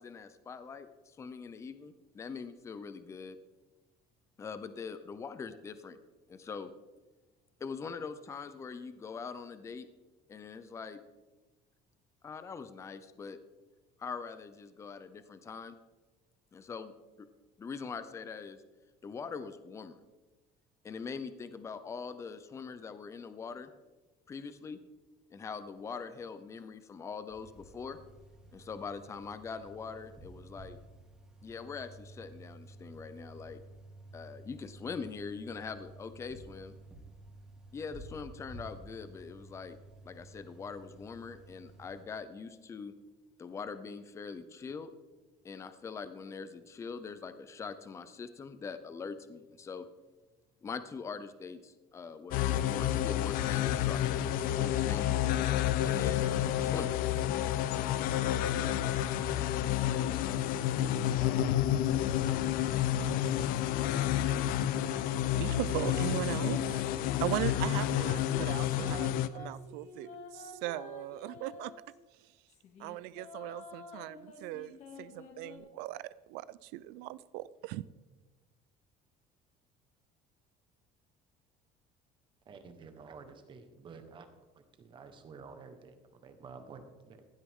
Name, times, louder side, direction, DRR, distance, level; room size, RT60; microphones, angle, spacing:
voice 1, 0.0-3.4 4.4-6.0 6.3-6.7 7.6-9.9 10.3-11.0 12.2-13.4 14.0-15.7 16.5-16.9 17.2-17.3 17.6-18.6 19.0-20.0 20.8-23.7 24.3-24.8 25.3-28.0 28.5-30.8 31.4-33.6 34.1-36.7 37.7-39.8 40.0-42.9 43.4-44.9 45.4-49.9 50.6-55.1 55.8-57.0 57.3-57.5, left 5 dB, 15° left, 12 dB, 0.6 m, -43 dB
sound 1, 27.3-42.0, right 2 dB, 5° right, 2.6 m, -52 dB
sound 2, 52.3-69.3, left 11 dB, 60° left, 0.6 m, -30 dB
sound 3, 59.3-62.8 63.3-67.6 68.1-72.0 72.5-75.6, left 4 dB, 45° left, 2.1 m, -50 dB
voice 2, 65.4-66.8 67.2-71.7 72.1-72.3 72.8-77.8, right 16 dB, 90° right, 18 dB, 0.5 m, -38 dB
voice 3, 82.4-84.3 84.5-87.2, right 5 dB, 30° right, 8 dB, 1.3 m, -51 dB
16.0 x 11.5 x 3.7 m, 1.2 s
cardioid pair, 170°, 16 cm